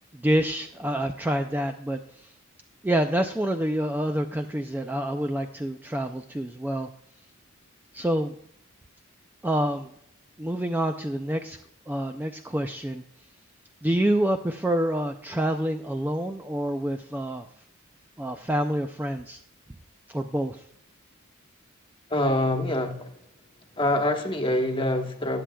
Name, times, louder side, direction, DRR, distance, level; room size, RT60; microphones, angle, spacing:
voice 1, 0.2-2.0 2.8-6.9 7.9-8.3 9.4-9.9 10.4-11.6 11.9-13.0 13.8-17.4 18.2-19.4 20.1-20.6, right 1 dB, 10° right, 6 dB, 0.3 m, -27 dB
voice 2, 22.1-23.1 23.8-25.4, left 1 dB, 25° left, 4 dB, 1.2 m, -25 dB
18.5 x 7.5 x 2.3 m, 0.71 s
head